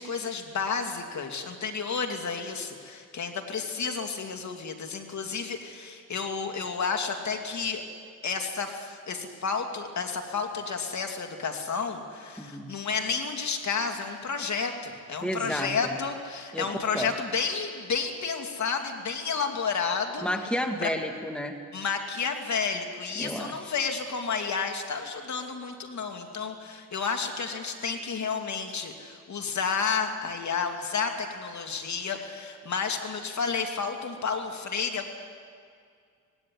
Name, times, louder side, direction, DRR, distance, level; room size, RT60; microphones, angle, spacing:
voice 1, 0.0-7.8 8.2-20.3 20.8-20.9 21.7-35.1, left 5 dB, 50° left, 4 dB, 2.6 m, -31 dB
voice 2, 12.4-12.7 15.2-15.7 16.5-17.1 20.2-21.5 23.2-23.5, equal, 5° left, 4 dB, 2.0 m, -31 dB
19.5 x 17.5 x 9.9 m, 2.2 s
cardioid pair, 80°, 36 cm